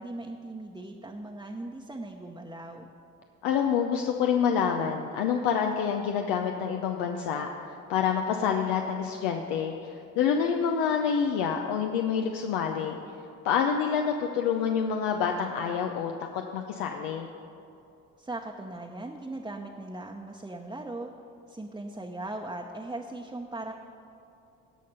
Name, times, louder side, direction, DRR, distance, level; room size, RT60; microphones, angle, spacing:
voice 1, 0.0-2.9 18.2-21.1 21.5-23.7, right 2 dB, 10° right, 0 dB, 0.8 m, -39 dB
voice 2, 3.4-7.5 7.9-13.0 13.4-17.3, left 7 dB, 85° left, 3 dB, 0.7 m, -27 dB
17.5 x 5.8 x 5.4 m, 2.7 s
supercardioid pair, 70°, 36 cm